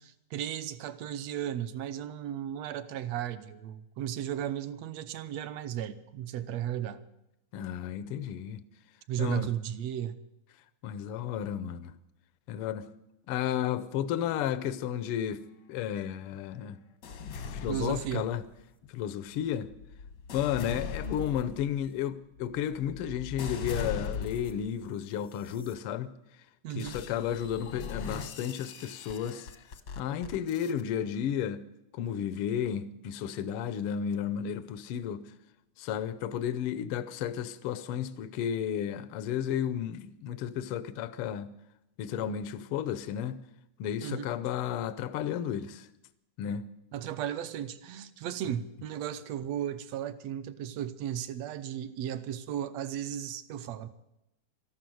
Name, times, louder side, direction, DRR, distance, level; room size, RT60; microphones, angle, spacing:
voice 1, 0.0-7.0 9.1-10.2 17.7-18.3 26.6-27.0 44.0-44.3 46.9-53.9, right 10 dB, 75° right, 1.7 m, -35 dB
voice 2, 7.5-8.6 9.2-9.5 10.8-11.9 12.5-12.9 13.3-16.8 17.2-18.4 18.9-19.7 20.3-26.1 26.8-29.5 30.0-31.6 31.9-35.2 35.8-41.5 42.0-43.4 43.8-45.9 46.4-46.7, left 9 dB, 90° left, 1.2 m, -33 dB
sound 1, 17.0-18.6 19.3-24.8 25.4-25.7 26.8-30.8, left 5 dB, 70° left, 1.0 m, -40 dB
13.5 x 12.0 x 7.7 m
omnidirectional pair, 3.5 m